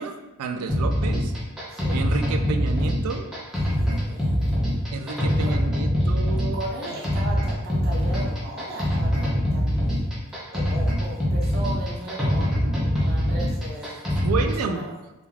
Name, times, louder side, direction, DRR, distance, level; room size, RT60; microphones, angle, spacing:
voice 1, 0.0-1.3 1.9-3.3 4.9-6.6 14.2-14.8, right 4 dB, 85° right, 7 dB, 0.3 m, -30 dB
sound 1, 0.7-14.6, equal, ahead, 0.5 m, -24 dB
voice 2, 1.7-2.0 3.5-4.8 5.1-5.6 6.5-10.0 10.5-14.0 14.6-14.9, right 1 dB, 45° right, -3 dB, 0.6 m, -37 dB
2.3 x 2.3 x 3.1 m, 1.0 s
head